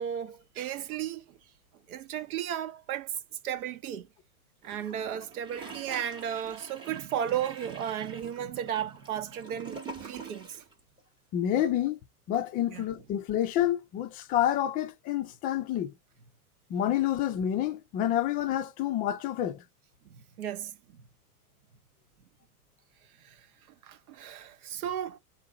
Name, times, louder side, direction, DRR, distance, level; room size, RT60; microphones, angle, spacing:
voice 1, 0.0-1.4 1.9-3.2 3.4-4.1 4.6-10.6 12.7-12.8 20.1-21.0 23.2-23.4 23.8-25.2, right 10 dB, 70° right, 0.9 m, -35 dB
Gurgling / Toilet flush, 4.6-10.7 11.0-11.1, right 4 dB, 10° right, 0.9 m, -45 dB
voice 2, 11.3-12.0 12.3-15.9 16.7-19.6, left 11 dB, 20° left, 0.4 m, -28 dB
3.7 x 2.8 x 3.8 m
hypercardioid pair, 120°, 45 cm